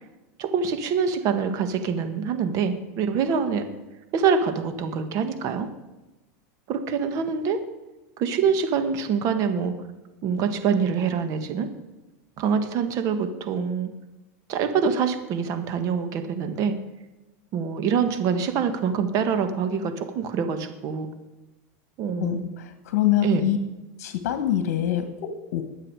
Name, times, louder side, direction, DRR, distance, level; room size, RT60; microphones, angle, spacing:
voice 1, 0.4-3.7 4.1-5.7 6.7-7.6 8.2-9.7 10.2-11.7 12.4-13.9 14.5-16.8 17.5-21.1 22.0-22.4 23.2-23.5, right 6 dB, 45° right, 8 dB, 1.7 m, -25 dB
voice 2, 22.2-23.6 24.0-25.6, left 12 dB, 70° left, 8 dB, 1.6 m, -25 dB
21.5 x 7.5 x 4.8 m, 1.1 s
supercardioid pair, 135°, 8 cm